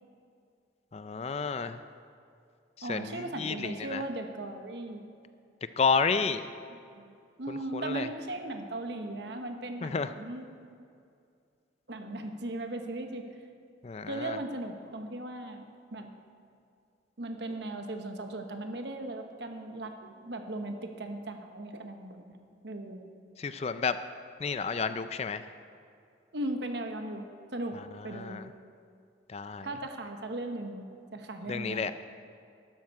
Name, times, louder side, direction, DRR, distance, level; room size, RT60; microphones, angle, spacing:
voice 1, 0.9-1.8 2.9-4.0 5.8-6.5 7.5-8.1 9.8-10.1 13.8-14.4 23.4-24.0 24.4-25.4 28.1-28.4 29.3-29.7 31.5-31.9, left 5 dB, 35° left, 11 dB, 0.4 m, -31 dB
voice 2, 2.8-5.0 6.7-10.5 11.9-13.4 14.1-16.1 17.2-23.1 26.3-28.4 29.6-30.9 31.1-31.9, right 1 dB, 65° right, 5 dB, 1.1 m, -38 dB
12.0 x 12.0 x 4.7 m, 2.4 s
head